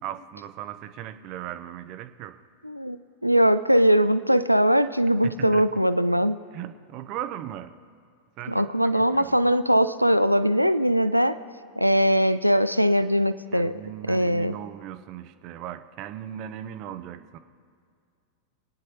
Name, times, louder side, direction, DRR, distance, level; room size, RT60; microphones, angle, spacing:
voice 1, 0.0-2.4 5.2-5.7 6.5-7.7 8.4-9.4 13.5-17.4, right 11 dB, 40° right, 11 dB, 0.6 m, -37 dB
voice 2, 2.6-6.4 8.5-11.4 11.8-13.8 14.1-14.5, equal, 90° right, 13 dB, 0.4 m, -21 dB
24.0 x 9.8 x 2.9 m, 2.2 s
figure-of-eight pair, 90°, 0 cm